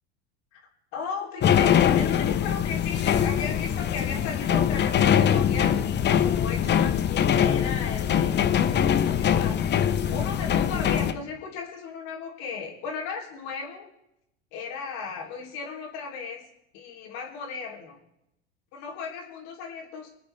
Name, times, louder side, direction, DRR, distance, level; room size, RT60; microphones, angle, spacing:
voice 1, 0.9-9.7 10.1-13.8 14.5-16.4 16.7-18.0 18.7-20.1, left 5 dB, 55° left, -1 dB, 3.2 m, -36 dB
sound 1, 1.4-11.1, left 9 dB, 30° left, 1.0 m, -23 dB
25.5 x 9.3 x 3.4 m, 0.84 s
hypercardioid pair, 80°, 32 cm